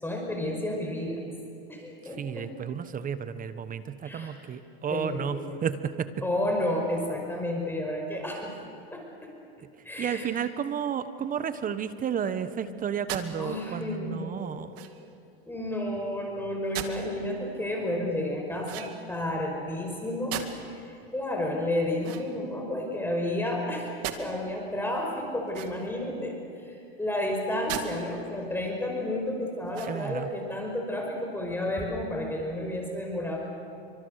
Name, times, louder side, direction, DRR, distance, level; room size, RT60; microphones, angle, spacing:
voice 1, 0.0-1.2 1.7-2.5 4.0-4.3 4.9-5.6 6.2-8.5 8.9-9.3 9.8-10.3 13.4-15.0 15.5-20.4 20.7-23.9 24.1-26.4 26.7-33.4, left 1 dB, 5° left, 0 dB, 5.4 m, -31 dB
voice 2, 2.2-6.1 10.0-14.7 29.9-30.3, right 8 dB, 25° right, 12 dB, 1.3 m, -32 dB
sound 1, 13.1-13.3 14.7-15.1 16.7-17.1 18.6-19.2 20.3-20.8 22.0-22.8 24.0-24.2 25.5-26.0 27.7-27.9 28.4-28.5 29.7-30.2, right 11 dB, 50° right, 2.4 m, -38 dB
29.5 x 25.0 x 6.7 m, 2.6 s
hypercardioid pair, 115°, 31 cm